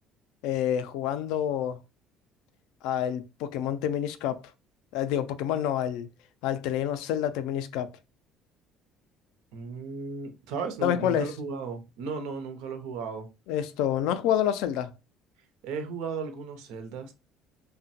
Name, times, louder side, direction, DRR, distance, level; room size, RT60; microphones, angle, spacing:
voice 1, 0.4-1.8 2.8-4.4 4.9-6.1 6.4-7.9 10.8-11.3 13.5-14.9, left 10 dB, 85° left, 0.3 m, -28 dB
voice 2, 9.5-13.3 15.6-17.1, right 5 dB, 90° right, 0.5 m, -35 dB
2.9 x 2.1 x 2.7 m
cardioid pair, 180°, 0 cm